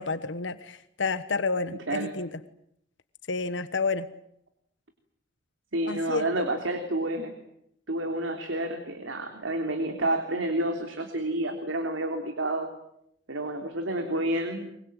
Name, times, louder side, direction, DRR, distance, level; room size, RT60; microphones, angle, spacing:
voice 1, 0.0-2.3 3.3-4.1 5.9-6.4, left 4 dB, 70° left, 13 dB, 1.3 m, -30 dB
voice 2, 5.7-7.3 7.9-12.7 13.3-14.7, right 1 dB, 90° right, 5 dB, 3.3 m, -29 dB
24.0 x 23.0 x 9.0 m, 0.76 s
head